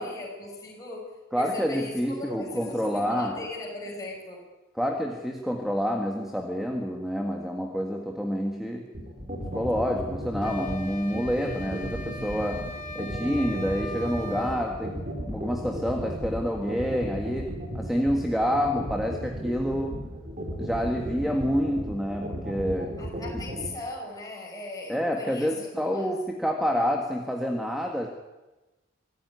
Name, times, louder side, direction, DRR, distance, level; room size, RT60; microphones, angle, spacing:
voice 1, 0.0-4.5 23.0-26.1, left 2 dB, 15° left, -3 dB, 6.1 m, -38 dB
voice 2, 1.3-3.4 4.8-8.9 9.5-12.7 12.9-20.0 20.6-23.0 24.9-28.1, equal, ahead, 2 dB, 1.9 m, -28 dB
sound 1, 8.9-23.7, equal, 35° right, 4.6 m, -34 dB
sound 2, 10.4-14.6, left 1 dB, 40° left, 2.9 m, -39 dB
25.0 x 15.0 x 9.7 m, 1.1 s
head